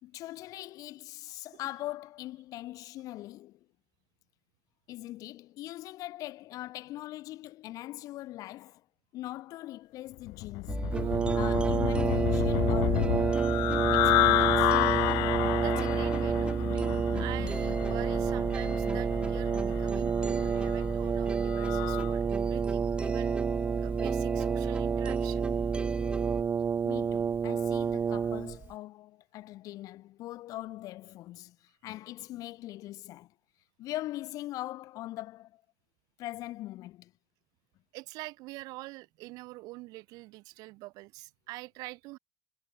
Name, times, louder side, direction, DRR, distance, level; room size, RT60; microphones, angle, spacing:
voice 1, 0.0-3.6 4.9-8.8 9.1-10.9 11.3-13.4 13.9-14.7 16.8-16.9 26.8-33.3 33.8-35.6 36.2-37.1, left 16 dB, 65° left, 3.7 m, -41 dB
sound 1, 10.3-22.1, left 27 dB, 85° left, 0.8 m, -30 dB
sound 2, 10.7-26.4, right 3 dB, 15° right, 2.9 m, -35 dB
Brass instrument, 10.9-28.7, right 6 dB, 30° right, 2.1 m, -30 dB
voice 2, 15.6-23.4 23.8-25.5 37.9-42.2, right 21 dB, 75° right, 7.6 m, -45 dB
cardioid pair, 115°, 6 cm